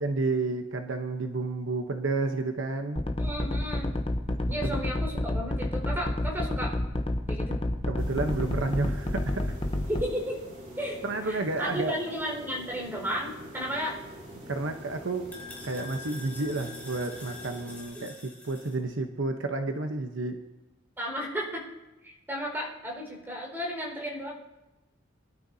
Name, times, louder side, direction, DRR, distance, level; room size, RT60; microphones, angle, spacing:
voice 1, 0.0-3.0 4.5-4.8 7.9-9.6 11.0-11.9 14.5-15.3 15.6-18.2 18.4-20.4, right 3 dB, 70° right, 5 dB, 1.0 m, -31 dB
sound 1, 3.0-10.0, left 1 dB, 25° left, 0.8 m, -29 dB
voice 2, 3.2-3.9 4.5-6.7 7.3-7.6 9.9-10.4 10.8-14.0 17.9-18.0 21.0-21.6 22.0-24.3, equal, 10° right, -2 dB, 4.9 m, -33 dB
sound 2, 8.0-17.8, equal, 45° right, 4.9 m, -45 dB
sound 3, 14.2-18.8, left 3 dB, 10° left, 3.1 m, -46 dB
25.0 x 12.5 x 2.8 m, 1.0 s
head